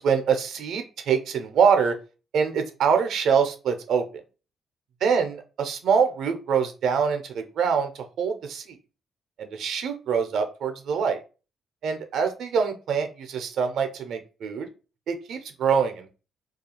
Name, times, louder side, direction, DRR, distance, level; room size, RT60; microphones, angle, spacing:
voice 1, 0.0-2.0 2.3-4.0 5.0-8.8 9.4-11.2 11.8-14.7 15.1-16.1, right 6 dB, 70° right, 6 dB, 0.5 m, -24 dB
2.3 x 2.3 x 2.8 m, 0.33 s
hypercardioid pair, 50°, 0 cm